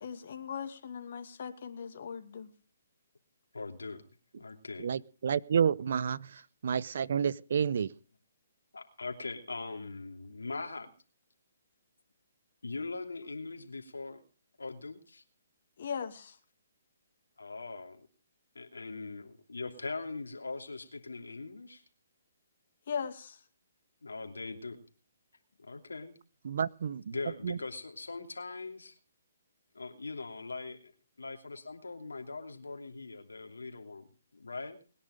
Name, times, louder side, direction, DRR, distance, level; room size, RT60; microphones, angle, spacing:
voice 1, 0.0-2.5 15.8-16.4 22.9-23.4, left 7 dB, 60° left, 2.4 m, -39 dB
voice 2, 3.5-4.0 4.3-4.9 8.7-10.9 12.6-14.2 14.6-15.2 17.4-18.1 18.5-21.8 24.0-24.8 25.6-26.1 27.1-29.0 29.7-30.9 31.2-34.1 34.3-34.8, left 3 dB, 90° left, 3.0 m, -41 dB
voice 3, 4.8-7.9 26.4-27.2 27.4-27.6, right 7 dB, 60° right, 0.7 m, -30 dB
21.0 x 10.5 x 5.1 m
hypercardioid pair, 145°, 0 cm